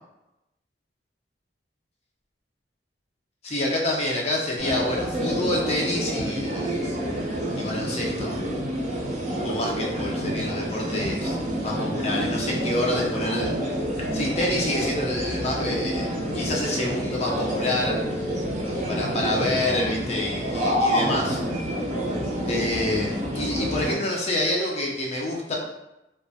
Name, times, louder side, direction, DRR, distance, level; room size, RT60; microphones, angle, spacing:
voice 1, 3.4-6.9 7.5-8.3 9.4-13.5 14.1-18.0 18.9-21.4 22.5-25.6, left 1 dB, 35° left, -2 dB, 0.5 m, -27 dB
sound 1, 4.6-24.0, equal, 40° right, 0.5 m, -28 dB
2.7 x 2.2 x 2.3 m, 0.94 s
head